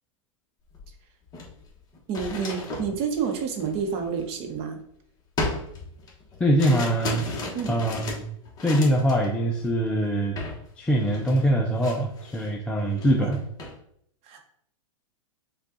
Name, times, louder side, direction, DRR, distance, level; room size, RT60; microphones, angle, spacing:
sound 1, 0.7-0.8 1.2-4.8 5.4-9.3 9.6-9.9 10.4-10.6 10.9-12.5 12.9-13.8, left 2 dB, 20° left, 1.0 m, -35 dB
voice 1, 2.1-4.8 7.5-7.8 13.2-13.3 14.2-14.4, right 6 dB, 35° right, 4 dB, 0.8 m, -29 dB
voice 2, 6.4-7.2 7.7-8.2 8.6-10.4 10.8-13.4, right 1 dB, 5° left, -1 dB, 0.3 m, -23 dB
5.2 x 2.3 x 3.8 m, 0.70 s
hypercardioid pair, 135°, 17 cm